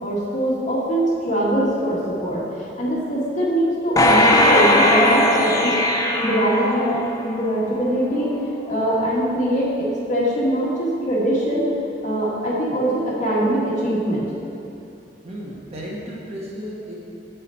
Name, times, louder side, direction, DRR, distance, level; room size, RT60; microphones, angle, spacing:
voice 1, 0.0-5.7 6.2-8.3 8.7-11.7 12.0-14.3, right 1 dB, 45° left, -6 dB, 1.7 m, -22 dB
sound 1, 4.0-7.4 7.9-8.0, left 1 dB, 20° left, 0.6 m, -18 dB
voice 2, 15.2-16.9, equal, 35° right, -3 dB, 1.2 m, -33 dB
6.8 x 6.7 x 4.4 m, 2.7 s
head